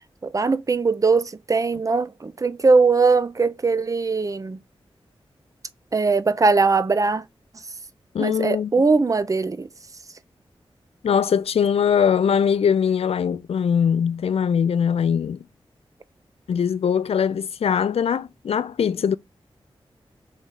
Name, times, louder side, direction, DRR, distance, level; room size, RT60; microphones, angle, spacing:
voice 1, 0.3-4.6 5.9-7.2 8.2-9.7, right 4 dB, 35° right, 0.5 m, -20 dB
voice 2, 8.1-8.7 11.0-15.4 16.5-19.2, left 7 dB, 75° left, 0.4 m, -21 dB
4.1 x 3.1 x 3.7 m
wide cardioid pair, 65°, 10 cm